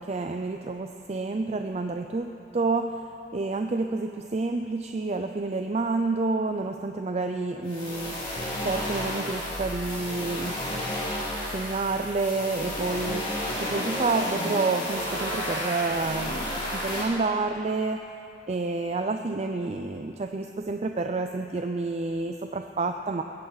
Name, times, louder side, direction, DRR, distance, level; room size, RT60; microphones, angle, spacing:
voice 1, 0.0-3.1 3.3-8.2 8.6-10.6 11.5-18.1 18.5-23.2, right 3 dB, 35° right, 6 dB, 0.5 m, -29 dB
sound 1, 7.6-17.0, left 1 dB, 30° left, 4.3 m, -32 dB
21.0 x 15.0 x 4.0 m, 2.7 s
head